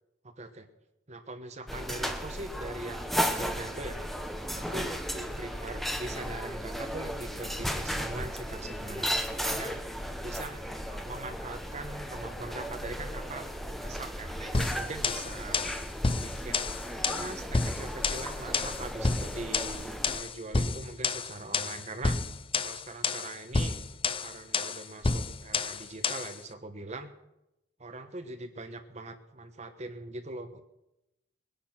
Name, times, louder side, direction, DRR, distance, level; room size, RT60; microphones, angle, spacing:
voice 1, 0.2-0.7 1.1-4.0 4.5-9.8 10.2-15.6 16.2-16.8 17.1-22.2 22.6-23.8 24.2-27.1 27.8-30.6, right 2 dB, 35° right, 7 dB, 1.2 m, -42 dB
sound 1, 1.7-20.2, equal, ahead, 1.1 m, -35 dB
sound 2, 14.5-26.4, left 4 dB, 30° left, 0.6 m, -30 dB
21.5 x 10.5 x 5.9 m, 0.90 s
head